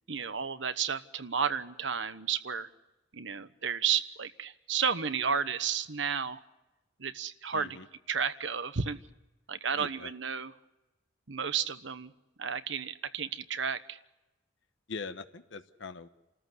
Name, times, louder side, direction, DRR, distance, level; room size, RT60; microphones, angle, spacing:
voice 1, 0.1-2.7 3.1-6.4 7.0-7.8 8.1-9.0 9.5-10.5 11.3-12.1 12.4-14.0, right 7 dB, 75° right, 12 dB, 1.1 m, -32 dB
voice 2, 7.5-7.9 9.7-10.1 14.9-16.1, left 4 dB, 75° left, 9 dB, 1.1 m, -42 dB
28.0 x 14.0 x 8.1 m, 1.0 s
head